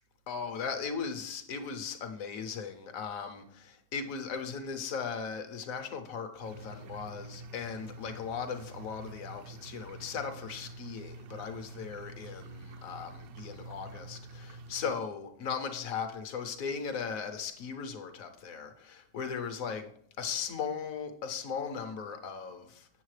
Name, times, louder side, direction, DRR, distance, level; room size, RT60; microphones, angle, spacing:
voice 1, 0.3-19.9 20.2-22.9, left 6 dB, 65° left, 1.0 m, -38 dB
sound 1, 6.4-14.9, right 2 dB, 70° right, 0.9 m, -47 dB
8.1 x 7.0 x 3.2 m
omnidirectional pair, 1.8 m